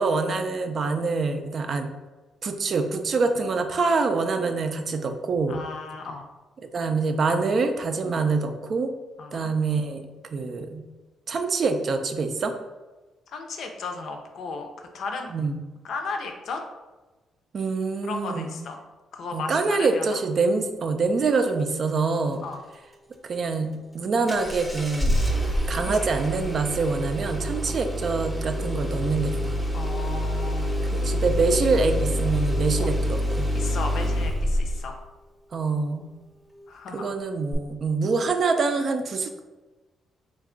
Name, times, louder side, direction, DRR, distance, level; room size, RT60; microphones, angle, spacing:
voice 1, 0.0-1.9 2.4-5.6 6.7-8.9 9.3-10.8 11.3-12.5 15.3-15.6 17.5-18.5 19.3-22.4 23.2-23.7 23.9-25.1 25.7-29.6 30.9-33.5 35.5-36.0 36.9-39.4, right 4 dB, 50° right, 6 dB, 0.4 m, -25 dB
voice 2, 5.5-6.3 9.2-9.5 13.3-15.3 15.8-16.6 18.0-18.8 19.1-20.2 22.4-22.6 25.7-26.4 27.7-27.8 29.7-30.8 32.8-32.9 33.5-35.0 36.7-37.0, left 4 dB, 65° left, 4 dB, 0.5 m, -35 dB
Engine starting, 24.3-34.9 37.5-37.6, equal, ahead, 0.7 m, -26 dB
3.5 x 2.3 x 3.7 m, 1.2 s
cardioid pair, 90°, 0 cm